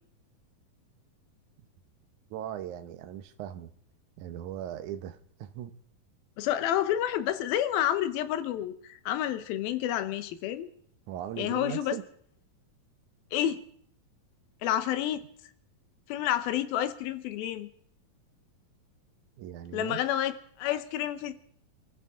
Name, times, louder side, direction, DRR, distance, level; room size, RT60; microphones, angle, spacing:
voice 1, 2.3-3.7 4.2-5.7 11.1-12.0 19.4-20.0, right 11 dB, 70° right, 10 dB, 2.2 m, -39 dB
voice 2, 6.4-10.7 11.4-12.0 13.3-13.6 14.6-15.2 16.1-17.7 19.7-21.3, left 11 dB, 90° left, 12 dB, 2.8 m, -29 dB
27.5 x 14.0 x 3.7 m, 0.63 s
omnidirectional pair, 4.1 m